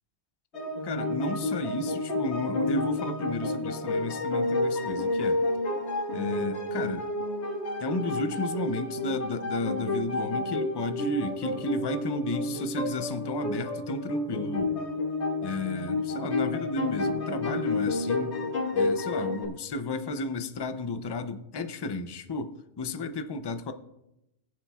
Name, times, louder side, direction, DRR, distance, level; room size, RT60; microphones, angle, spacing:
sound 1, 0.5-19.5, left 2 dB, 75° left, 1.9 m, -30 dB
voice 1, 0.8-5.4 6.1-7.1 7.8-14.8 15.4-18.4 18.7-23.7, left 2 dB, 30° left, 9 dB, 0.4 m, -33 dB
21.5 x 7.5 x 2.3 m, 0.88 s
omnidirectional pair, 1.2 m